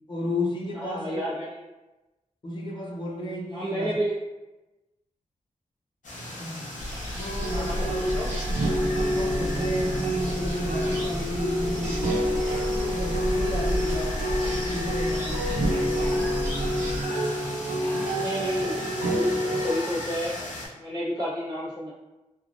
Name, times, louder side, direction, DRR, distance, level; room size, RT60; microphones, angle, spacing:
voice 1, 0.1-1.2 2.4-3.9 6.4-6.7 7.2-7.9 8.8-12.4 12.7-16.3, left 1 dB, 35° left, -3 dB, 0.6 m, -33 dB
voice 2, 0.7-1.6 3.5-4.1 7.5-8.3 18.0-18.8 19.1-21.9, equal, 35° right, -10 dB, 1.2 m, -31 dB
sound 1, 6.0-20.7, left 1 dB, 70° left, 0.9 m, -37 dB
sound 2, 6.8-17.0, equal, 70° right, 1.4 m, -32 dB
sound 3, 7.4-19.7, equal, 90° right, 0.6 m, -28 dB
3.2 x 2.4 x 2.5 m, 1.1 s
wide cardioid pair, 135°, 13 cm